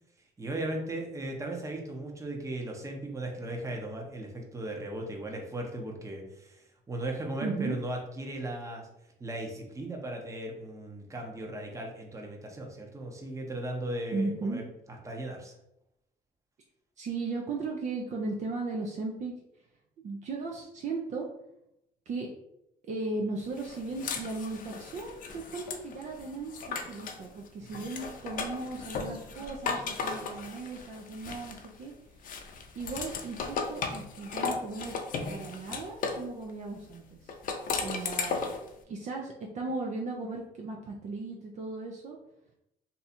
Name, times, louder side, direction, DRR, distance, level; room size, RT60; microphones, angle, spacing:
voice 1, 0.4-8.9 9.2-14.6 15.0-15.5 27.7-27.9, right 1 dB, 20° right, 1 dB, 0.8 m, -37 dB
voice 2, 7.4-7.8 14.1-14.6 17.0-19.3 20.0-21.3 22.1-22.3 22.8-32.3 32.7-34.9 35.2-37.3 37.8-38.4 38.9-42.2, right 3 dB, 45° right, 0 dB, 0.5 m, -36 dB
sound 1, 23.6-27.2 27.7-31.8 32.2-36.3 37.3-38.7, left 5 dB, 55° left, 0.5 m, -36 dB
2.7 x 2.3 x 4.1 m, 0.83 s
cardioid pair, 110°, 17 cm